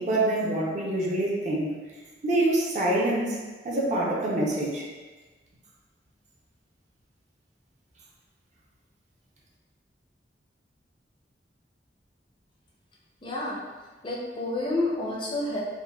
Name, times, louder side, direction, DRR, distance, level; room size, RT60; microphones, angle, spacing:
voice 1, 0.0-1.7 2.2-3.4 3.6-4.9, right 1 dB, 40° right, -3 dB, 0.5 m, -25 dB
voice 2, 13.2-13.6 14.0-15.6, left 2 dB, 30° left, -4 dB, 0.4 m, -29 dB
3.7 x 2.1 x 2.2 m, 1.3 s
head